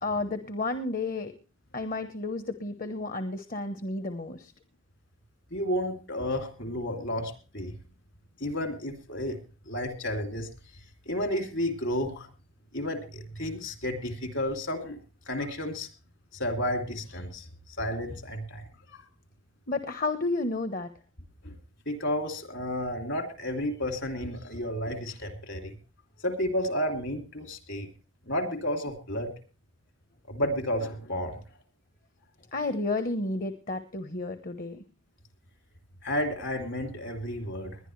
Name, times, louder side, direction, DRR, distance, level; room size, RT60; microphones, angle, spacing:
voice 1, 0.0-1.3 1.7-4.5 19.7-20.9 32.5-34.8, left 2 dB, 40° left, 10 dB, 1.1 m, -31 dB
voice 2, 5.5-7.7 8.4-9.4 9.7-10.5 11.1-12.3 12.7-15.0 15.3-15.9 16.3-17.5 17.8-18.6 18.9-19.0 21.4-21.6 21.9-25.7 26.2-27.9 28.3-29.3 30.3-31.4 36.0-37.8, left 1 dB, 60° left, 7 dB, 2.9 m, -31 dB
21.0 x 11.0 x 3.2 m, 0.35 s
head